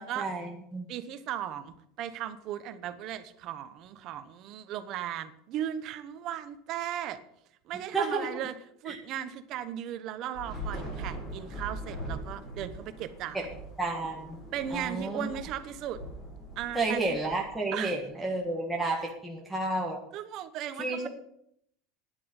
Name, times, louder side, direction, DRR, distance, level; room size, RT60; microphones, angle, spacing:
voice 1, 0.0-0.9 7.9-8.3 8.9-9.0 13.3-13.5 13.8-14.4 14.7-15.3 16.7-20.0 20.8-21.1, right 2 dB, ahead, -3 dB, 1.6 m, -31 dB
voice 2, 0.9-7.2 7.7-8.5 8.8-13.4 14.5-16.0 16.6-17.0 17.7-18.0 20.1-21.1, right 10 dB, 40° right, 11 dB, 1.1 m, -37 dB
Thunder / Rain, 10.3-17.9, right 1 dB, 15° left, 4.8 m, -41 dB
10.5 x 8.4 x 8.9 m, 0.72 s
cardioid pair, 170°, 0 cm